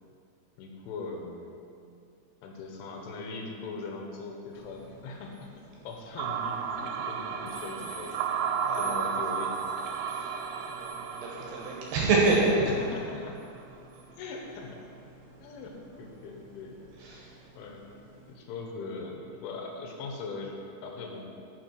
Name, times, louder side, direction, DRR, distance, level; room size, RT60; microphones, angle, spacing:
voice 1, 0.6-1.6 2.4-5.5 5.8-8.5 8.8-9.6 12.6-13.5 14.2-14.8 15.4-16.9 17.6-17.9 18.3-21.3, left 3 dB, 85° left, 1 dB, 3.3 m, -40 dB
sound 1, 4.5-18.3, right 1 dB, 45° right, 2.9 m, -52 dB
sound 2, 6.2-13.3, right 7 dB, 85° right, 2.5 m, -33 dB
voice 2, 8.6-9.0 10.1-10.3 10.7-12.7 17.0-17.4, right 3 dB, 70° right, -3 dB, 2.9 m, -27 dB
9.5 x 7.0 x 4.6 m, 2.4 s
omnidirectional pair, 5.6 m